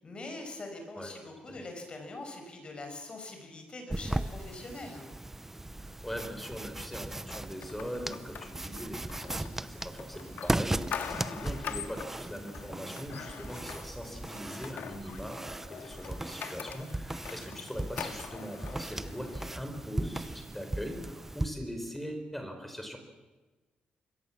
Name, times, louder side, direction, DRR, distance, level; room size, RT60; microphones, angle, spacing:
voice 1, 0.0-5.1 11.0-11.3, left 2 dB, 35° left, 4 dB, 6.4 m, -43 dB
sound 1, 3.9-21.5, right 2 dB, 10° right, 0.7 m, -37 dB
voice 2, 5.8-23.0, equal, 5° left, 6 dB, 4.3 m, -41 dB
sound 2, 7.3-19.6, left 8 dB, 70° left, 1.9 m, -44 dB
26.0 x 22.0 x 7.3 m, 1.2 s
cardioid pair, 140°, 3 cm